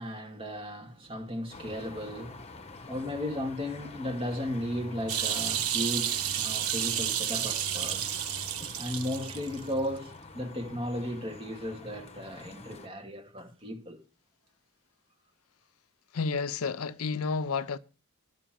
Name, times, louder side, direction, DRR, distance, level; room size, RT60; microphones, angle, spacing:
voice 1, 0.0-8.1 8.8-14.0, equal, 25° right, 2.3 m, -35 dB
sound 1, 1.5-12.9, left 3 dB, 30° left, 1.2 m, -46 dB
sound 2, 5.1-9.6 10.0-10.1, right 10 dB, 80° right, 1.2 m, -31 dB
voice 2, 16.1-17.8, left 4 dB, 75° left, 0.6 m, -30 dB
11.5 x 6.2 x 7.6 m
head